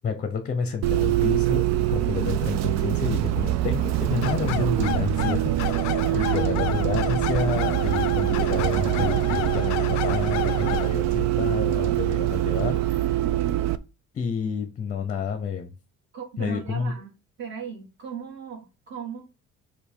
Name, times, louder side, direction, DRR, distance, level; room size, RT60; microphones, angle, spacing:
voice 1, 0.0-13.2 14.1-15.7 16.4-16.9, left 6 dB, 25° left, 0.8 m, -30 dB
Bus, 0.8-13.8, right 14 dB, 65° right, 0.6 m, -24 dB
voice 2, 2.0-2.4 6.1-6.6 13.2-13.7 16.1-17.1 17.4-19.2, right 6 dB, 40° right, 2.0 m, -37 dB
sound 1, 4.2-10.9, left 14 dB, 65° left, 0.4 m, -32 dB
6.6 x 2.7 x 5.4 m
cardioid pair, 160°, 30 cm